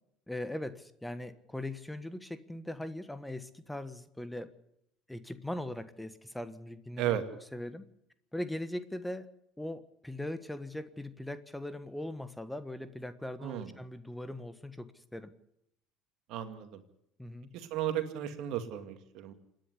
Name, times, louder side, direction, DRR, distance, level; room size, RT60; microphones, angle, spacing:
voice 1, 0.3-4.5 5.1-7.2 7.5-7.8 8.3-9.3 9.6-15.3 17.2-17.5, left 1 dB, 5° left, 12 dB, 1.4 m, -40 dB
voice 2, 13.4-13.7 16.3-16.8 17.5-19.3, right 11 dB, 65° right, 8 dB, 2.3 m, -34 dB
27.0 x 10.5 x 9.9 m, 0.76 s
hypercardioid pair, 75°, 0 cm